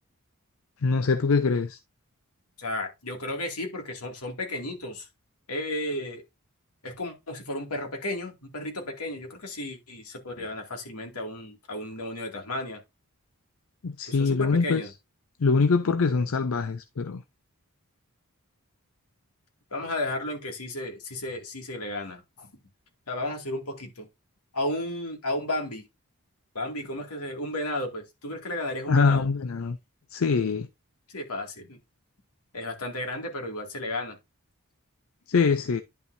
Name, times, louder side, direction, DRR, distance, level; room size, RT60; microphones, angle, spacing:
voice 1, 0.8-1.8 13.8-14.8 15.4-17.2 28.9-29.8 30.1-30.7 35.3-35.8, left 4 dB, 65° left, 0.5 m, -23 dB
voice 2, 2.6-5.1 5.5-6.2 6.8-12.8 14.1-14.9 19.7-22.5 23.1-24.1 24.5-25.9 26.5-29.3 31.1-31.8 32.5-34.2, left 1 dB, 85° left, 2.3 m, -33 dB
10.5 x 5.5 x 2.6 m
head